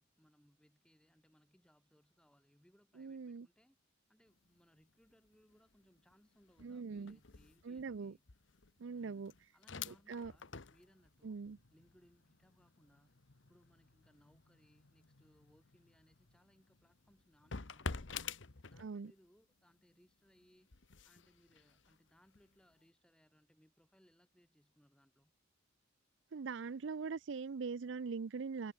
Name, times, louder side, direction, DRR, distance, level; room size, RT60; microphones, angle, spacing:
voice 1, 0.0-3.8 4.1-8.2 8.9-11.4 11.7-18.2 18.7-20.7 21.0-25.3, equal, 5° left, 4.0 m, -70 dB
voice 2, 3.0-3.5 6.6-7.2 7.6-8.1 8.8-9.3 9.9-10.3 11.2-11.6 18.8-19.1 26.3-28.7, right 5 dB, 65° right, 0.5 m, -42 dB
sound 1, 4.3-4.6 4.9-19.3 19.7-22.7, left 5 dB, 70° left, 1.2 m, -51 dB
head